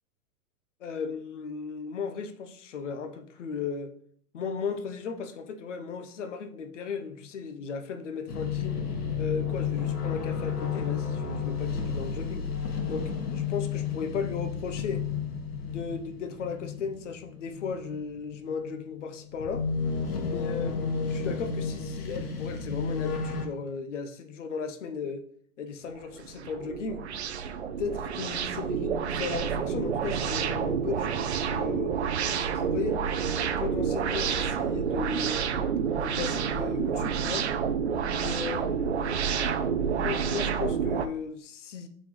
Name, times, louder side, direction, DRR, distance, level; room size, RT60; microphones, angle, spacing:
voice 1, 0.8-3.9 4.3-8.8 9.2-12.5 12.9-15.0 15.6-19.6 20.2-25.2 25.6-27.1 27.8-31.9 32.3-33.1 33.6-35.4 36.0-37.5 38.1-39.4 39.8-41.9, left 5 dB, 55° left, 7 dB, 0.9 m, -36 dB
sound 1, 8.3-23.4, left 6 dB, 90° left, 1.7 m, -32 dB
sound 2, 25.9-41.1, right 7 dB, 50° right, 0.5 m, -29 dB
7.5 x 4.2 x 3.1 m, 0.63 s
hypercardioid pair, 180°, 45 cm